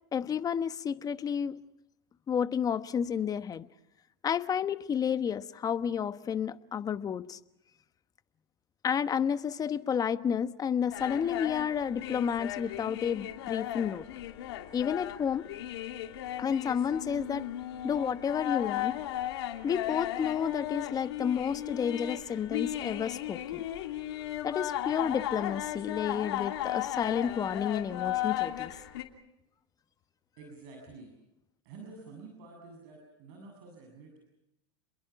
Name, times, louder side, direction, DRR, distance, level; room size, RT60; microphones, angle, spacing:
voice 1, 0.1-1.6 2.3-3.7 4.2-7.4 8.8-14.0 14.7-15.5 16.4-17.5 17.8-19.0 19.6-23.6 24.4-28.7, left 7 dB, 25° left, 12 dB, 1.2 m, -31 dB
sound 1, 10.9-29.0, left 12 dB, 75° left, 3.0 m, -36 dB
voice 2, 30.4-31.1 31.6-34.3, right 3 dB, 65° right, 2 dB, 7.4 m, -49 dB
30.0 x 22.0 x 5.9 m, 0.89 s
hypercardioid pair, 110°, 14 cm